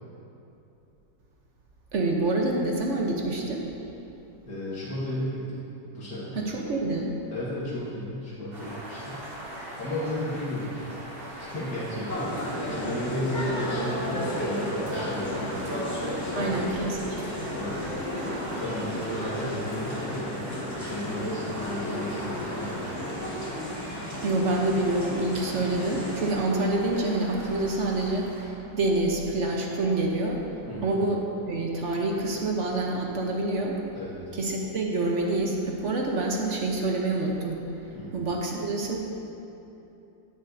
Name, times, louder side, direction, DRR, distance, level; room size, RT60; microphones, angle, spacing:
voice 1, 1.9-3.7 6.4-7.1 16.4-17.2 24.2-30.4 30.8-33.8 34.3-37.6 38.1-39.0, right 2 dB, 55° right, 0 dB, 0.9 m, -27 dB
voice 2, 4.5-6.4 7.3-9.2 9.5-10.8 11.4-15.8 16.2-16.6 17.5-22.8 30.7-31.0 33.9-34.2 37.9-38.1, left 1 dB, 70° left, -8 dB, 2.2 m, -34 dB
sound 1, 8.5-28.5, right 1 dB, 30° right, 2.1 m, -41 dB
sound 2, 12.1-26.3, equal, 10° left, 1.6 m, -33 dB
17.5 x 6.6 x 2.6 m, 2.9 s
omnidirectional pair, 1.9 m